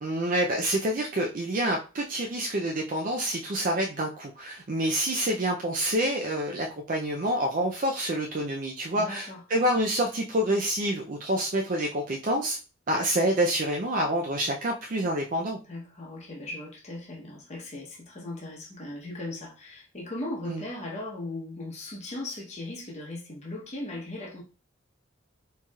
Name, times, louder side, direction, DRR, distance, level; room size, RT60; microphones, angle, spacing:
voice 1, 0.0-12.6 12.9-15.6 20.5-20.6, right 1 dB, 40° right, 0.5 m, -27 dB
voice 2, 8.9-9.4 15.6-24.4, left 2 dB, 35° left, 0.9 m, -38 dB
4.5 x 3.0 x 2.3 m
head